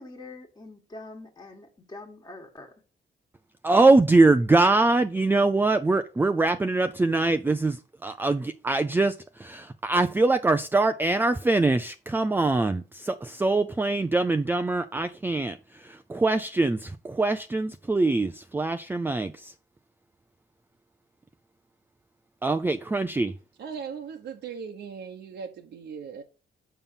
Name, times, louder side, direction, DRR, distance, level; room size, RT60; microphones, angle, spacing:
voice 1, 0.0-2.7, left 2 dB, 20° left, 1.5 m, -44 dB
voice 2, 3.6-15.6 15.8-19.5 22.4-23.3, right 3 dB, 10° right, 0.4 m, -23 dB
voice 3, 23.6-26.2, right 6 dB, 80° right, 1.1 m, -38 dB
7.2 x 5.5 x 5.5 m
wide cardioid pair, 140°, 18 cm